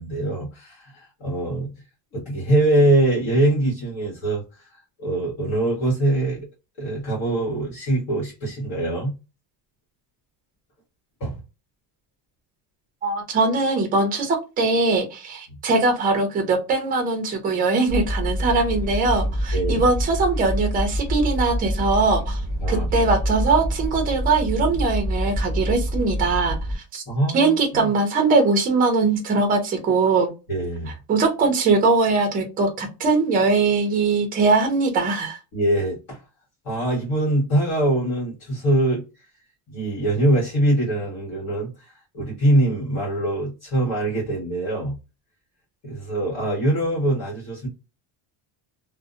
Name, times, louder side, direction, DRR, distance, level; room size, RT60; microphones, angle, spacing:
voice 1, 0.0-1.7 2.1-4.7 5.0-6.5 6.8-9.1 11.2-11.3 19.5-19.9 22.6-22.9 27.1-27.9 30.5-30.9 35.5-36.2 36.6-39.0 39.7-45.0 45.8-47.7, right 1 dB, 50° left, 1.3 m, -23 dB
voice 2, 13.0-22.4 22.7-27.0 27.3-30.3 31.1-35.4, right 3 dB, 20° right, 0.5 m, -21 dB
sound 1, 17.9-26.8, equal, 5° left, 1.4 m, -26 dB
2.6 x 2.1 x 2.5 m
cardioid pair, 180°, 47 cm